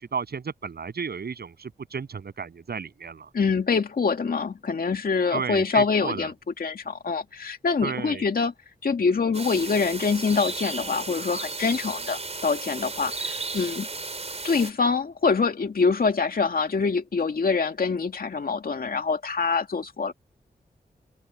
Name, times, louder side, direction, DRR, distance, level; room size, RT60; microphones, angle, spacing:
voice 1, 0.0-3.3 5.3-6.3 7.8-8.2, right 5 dB, 75° right, 7.7 m, -33 dB
voice 2, 3.3-6.3 6.6-8.5 8.8-13.9 14.4-20.1, left 5 dB, 60° left, 2.3 m, -25 dB
sound 1, 9.3-14.7, right 3 dB, 40° right, 5.2 m, -34 dB
open air
cardioid pair, 55°, 17 cm